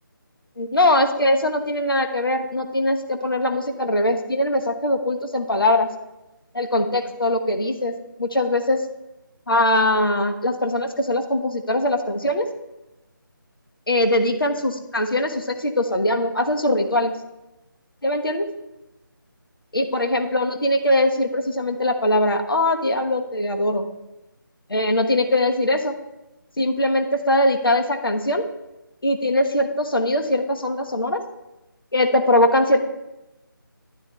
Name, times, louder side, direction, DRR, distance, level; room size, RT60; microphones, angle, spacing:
voice 1, 0.6-5.9 6.5-7.9 8.2-8.8 9.5-12.4 13.9-17.1 18.0-18.5 19.7-23.9 24.7-25.9 26.6-28.4 29.0-31.2 31.9-32.8, left 1 dB, 75° left, 5 dB, 1.2 m, -21 dB
11.0 x 10.5 x 2.3 m, 0.97 s
figure-of-eight pair, 160°, 12 cm